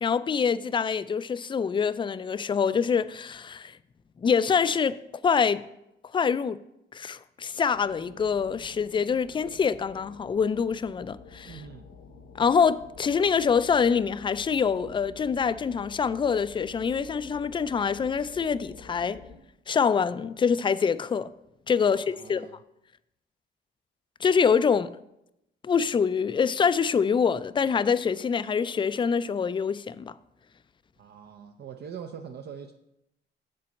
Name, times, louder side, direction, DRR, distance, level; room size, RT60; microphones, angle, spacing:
voice 1, 0.0-3.7 4.2-5.0 5.2-5.6 6.1-6.6 6.9-11.6 12.4-19.2 19.7-21.3 21.7-22.5 24.2-24.9 25.6-30.1, left 6 dB, 25° left, 0.3 m, -25 dB
sound 1, 7.7-19.4, left 4 dB, 85° left, 1.1 m, -49 dB
voice 2, 11.5-11.9 21.8-22.6 31.0-32.7, right 7 dB, 55° right, 0.6 m, -43 dB
7.6 x 4.2 x 6.9 m
cardioid pair, 90°, 20 cm